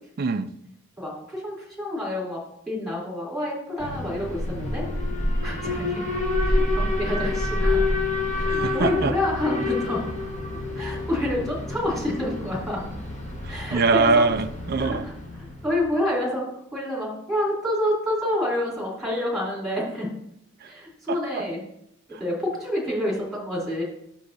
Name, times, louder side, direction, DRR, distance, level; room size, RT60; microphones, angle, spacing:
voice 1, 0.2-0.5 8.5-9.1 13.7-15.1 20.6-20.7 21.1-21.5, right 4 dB, 50° right, 0.4 m, -23 dB
voice 2, 1.0-2.4 2.7-4.8 5.4-6.0 6.4-7.9 8.3-10.1 10.7-12.8 13.5-14.2 14.8-15.1 15.4-16.4 16.7-20.1 20.6-21.6 22.2-23.8, left 1 dB, ahead, 3.2 m, -28 dB
Alarm, 3.8-15.8, left 2 dB, 35° left, 1.4 m, -27 dB
9.6 x 6.9 x 2.6 m
head